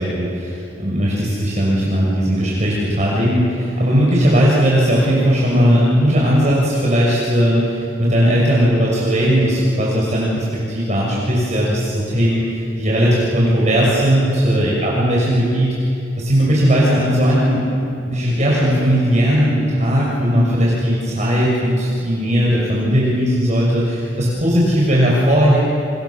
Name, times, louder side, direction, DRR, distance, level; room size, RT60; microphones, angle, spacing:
voice 1, 0.0-15.7 16.2-17.7 18.1-25.6, equal, 40° right, -5 dB, 6.4 m, -17 dB
30.0 x 26.5 x 7.3 m, 2.5 s
head